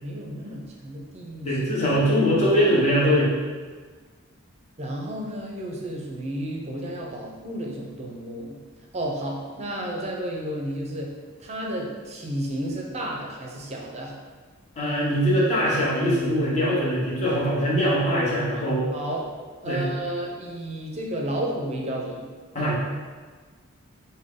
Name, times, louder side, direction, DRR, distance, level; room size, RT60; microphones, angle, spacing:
voice 1, 0.0-1.8 4.8-8.6 8.9-11.1 11.4-14.1 18.9-19.3 19.6-22.3, right 1 dB, 30° right, -1 dB, 0.6 m, -32 dB
voice 2, 1.4-3.3 14.8-18.8 19.6-19.8 22.5-22.7, equal, 30° left, -7 dB, 1.1 m, -22 dB
5.0 x 2.2 x 3.7 m, 1.5 s
head